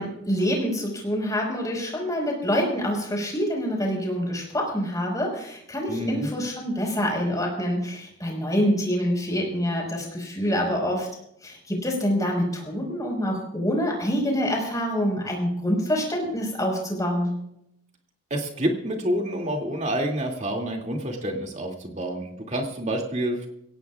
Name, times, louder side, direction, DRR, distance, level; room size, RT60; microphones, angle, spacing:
voice 1, 0.0-11.1 11.4-17.3, equal, 15° left, 0 dB, 5.2 m, -26 dB
voice 2, 5.9-6.3 18.3-23.5, right 1 dB, 35° right, 1 dB, 2.6 m, -28 dB
23.0 x 17.5 x 2.5 m, 0.77 s
head